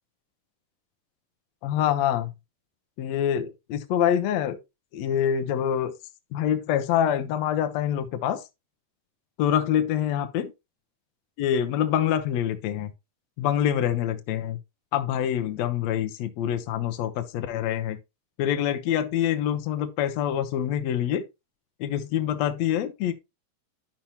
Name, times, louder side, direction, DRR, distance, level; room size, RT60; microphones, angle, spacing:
voice 1, 1.6-2.3 3.0-4.6 4.9-5.9 6.3-8.4 9.4-10.5 11.4-12.9 13.4-14.6 14.9-18.0 18.4-21.2 21.8-23.1, left 10 dB, 90° left, 1.5 m, -25 dB
12.0 x 5.7 x 2.9 m
omnidirectional pair, 4.4 m